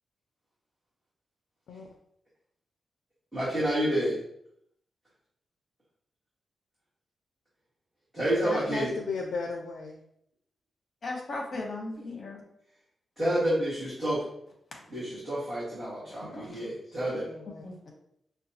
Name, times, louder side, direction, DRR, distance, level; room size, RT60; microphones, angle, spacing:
voice 1, 3.3-4.2 8.1-8.9 13.2-14.2 14.9-17.3, right 1 dB, ahead, -12 dB, 1.5 m, -29 dB
voice 2, 8.4-10.0 11.5-11.6 17.1-17.6, left 4 dB, 90° left, 2 dB, 0.4 m, -35 dB
voice 3, 11.0-12.4 14.8-14.9 16.1-16.6 17.6-17.9, left 2 dB, 45° left, 0 dB, 0.9 m, -38 dB
5.4 x 2.2 x 2.8 m, 0.73 s
wide cardioid pair, 140°, 0 cm